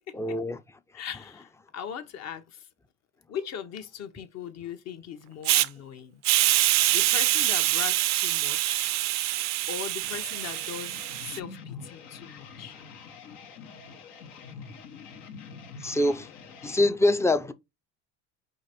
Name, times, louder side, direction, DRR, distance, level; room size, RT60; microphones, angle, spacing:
voice 1, 0.2-0.6 15.8-16.3 16.6-17.5, left 1 dB, 10° left, 0.4 m, -24 dB
voice 2, 0.9-2.7 3.3-6.2 6.9-8.9 9.7-12.8, left 8 dB, 50° left, 0.9 m, -39 dB
Hiss, 5.4-5.7 6.2-11.4, right 16 dB, 55° right, 0.4 m, -25 dB
sound 1, 10.0-16.9, left 5 dB, 85° left, 1.2 m, -45 dB
5.0 x 2.5 x 4.1 m
supercardioid pair, 100°, 34 cm